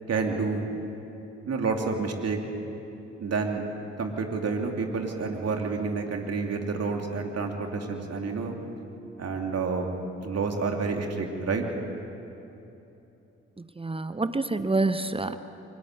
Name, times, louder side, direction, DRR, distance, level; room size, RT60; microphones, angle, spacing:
voice 1, 0.1-0.7 1.5-2.4 3.2-3.6 4.0-8.6 9.2-9.9 10.2-11.6, right 4 dB, 45° right, 3 dB, 2.9 m, -29 dB
voice 2, 13.6-15.4, right 3 dB, 15° right, 11 dB, 1.0 m, -27 dB
23.5 x 18.5 x 8.2 m, 2.9 s
figure-of-eight pair, 40°, 35 cm